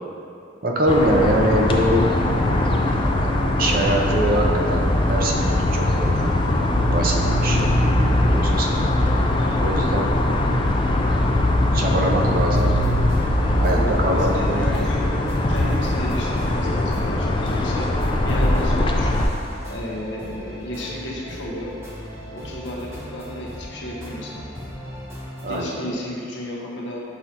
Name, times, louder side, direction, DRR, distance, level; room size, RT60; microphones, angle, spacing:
voice 1, 0.6-2.0 3.2-6.3 6.7-8.9 9.6-10.1 11.7-12.7 13.6-14.7 25.4-26.0, right 1 dB, 45° right, 0 dB, 0.6 m, -24 dB
sound 1, 0.9-19.3, left 1 dB, 25° left, 0.3 m, -21 dB
sound 2, 12.5-25.6, equal, 15° right, 1.0 m, -38 dB
voice 2, 13.7-15.0 15.5-17.9 18.2-19.2 19.6-21.7 22.3-24.4 25.5-27.0, equal, 65° left, -3 dB, 0.9 m, -33 dB
6.2 x 5.3 x 2.9 m, 2.5 s
head